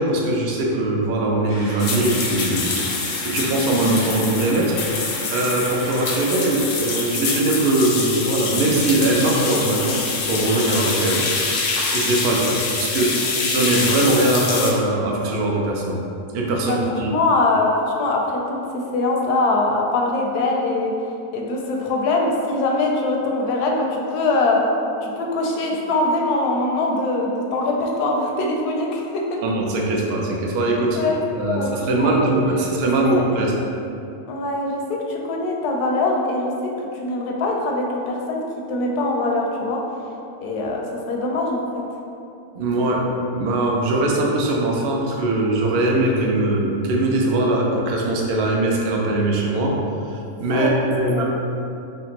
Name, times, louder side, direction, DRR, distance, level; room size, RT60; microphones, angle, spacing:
voice 1, 0.0-10.0 10.3-11.2 11.9-16.0 16.3-17.1 29.4-31.0 31.3-33.6 42.5-43.0 43.3-49.8 50.0-51.2, right 2 dB, 65° right, -2 dB, 0.6 m, -21 dB
sound 1, 1.5-7.2, equal, 20° right, 0.5 m, -36 dB
sound 2, 1.8-14.7, left 4 dB, 70° left, 0.8 m, -25 dB
voice 2, 16.6-18.6 18.9-20.9 21.3-24.6 25.0-29.4 30.9-31.7 32.0-32.1 33.0-33.2 34.3-34.8 35.1-36.5 36.8-38.4 38.7-39.8 40.4-41.6 50.5-50.7 51.0-51.2, left 2 dB, 85° left, 0 dB, 1.1 m, -22 dB
3.5 x 3.3 x 2.9 m, 2.6 s
omnidirectional pair, 1.6 m